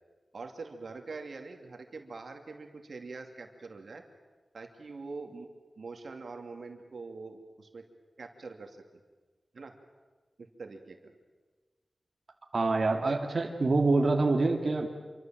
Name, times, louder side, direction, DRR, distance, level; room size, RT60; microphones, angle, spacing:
voice 1, 0.3-4.0 4.5-5.5 5.8-7.8 8.2-8.8 9.5-9.8 10.4-11.1 12.9-13.2, right 4 dB, 75° right, 5 dB, 2.6 m, -44 dB
voice 2, 12.5-14.9, right 3 dB, 55° right, 2 dB, 2.2 m, -26 dB
27.0 x 24.5 x 7.7 m, 1.3 s
wide cardioid pair, 110°, 0 cm